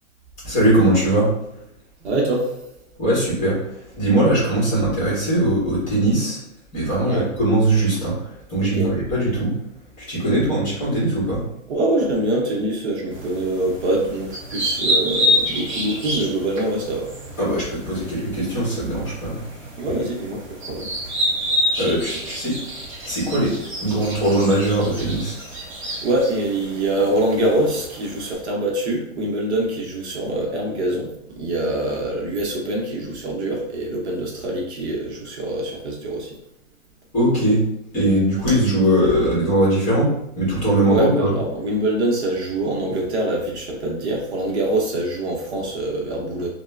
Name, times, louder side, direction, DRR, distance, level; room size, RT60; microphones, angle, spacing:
voice 1, 0.4-1.3 3.0-3.6 4.0-6.4 6.7-9.5 10.0-11.4 17.4-19.4 21.8-22.5 23.0-23.5 23.8-25.4 37.1-37.6 37.9-40.1 40.4-41.3, right 1 dB, 20° left, -7 dB, 1.2 m, -20 dB
voice 2, 2.0-2.5 7.0-7.3 8.8-8.9 10.2-10.4 11.7-17.1 19.8-20.9 26.0-36.4 40.9-46.5, right 1 dB, 55° right, -1 dB, 0.7 m, -24 dB
sound 1, 13.1-28.3, left 1 dB, 25° right, 0.7 m, -28 dB
2.9 x 2.1 x 2.3 m, 0.83 s
hypercardioid pair, 150°, 40 cm